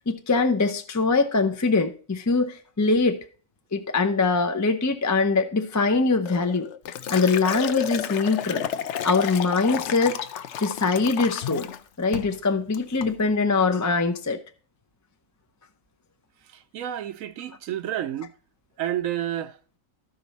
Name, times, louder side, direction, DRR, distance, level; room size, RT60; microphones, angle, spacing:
voice 1, 0.0-3.2 3.7-6.7 7.1-8.6 9.0-11.7 12.0-14.4, left 4 dB, 25° left, 0.4 m, -23 dB
Liquid, 6.3-11.8 12.1-12.4 12.7-13.1, left 9 dB, 65° left, 0.8 m, -32 dB
voice 2, 16.5-18.3 18.8-19.6, right 11 dB, 80° right, 1.0 m, -30 dB
13.0 x 5.2 x 4.0 m
omnidirectional pair, 1.4 m